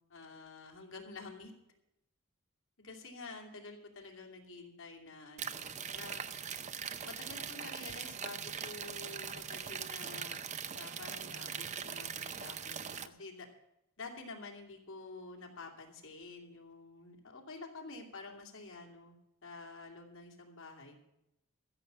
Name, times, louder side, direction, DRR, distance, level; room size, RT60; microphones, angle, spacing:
voice 1, 0.1-1.5 2.8-6.2 7.0-10.4 10.7-13.5 14.0-19.1 19.4-21.0, left 3 dB, 60° left, 1 dB, 2.7 m, -49 dB
sound 1, 5.4-13.1, right 7 dB, 35° right, 0.5 m, -41 dB
14.5 x 6.9 x 8.6 m, 0.86 s
head